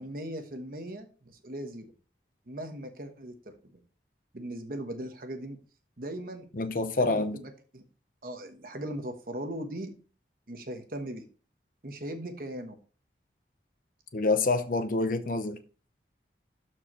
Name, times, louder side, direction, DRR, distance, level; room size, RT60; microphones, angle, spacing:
voice 1, 0.0-1.9 2.5-3.5 4.3-5.6 6.0-6.7 7.0-7.8 8.2-9.9 10.5-11.2 11.8-12.8, right 1 dB, 55° right, 1.1 m, -39 dB
voice 2, 6.5-7.4 14.1-15.6, left 3 dB, 50° left, 0.8 m, -27 dB
12.5 x 4.6 x 3.0 m
head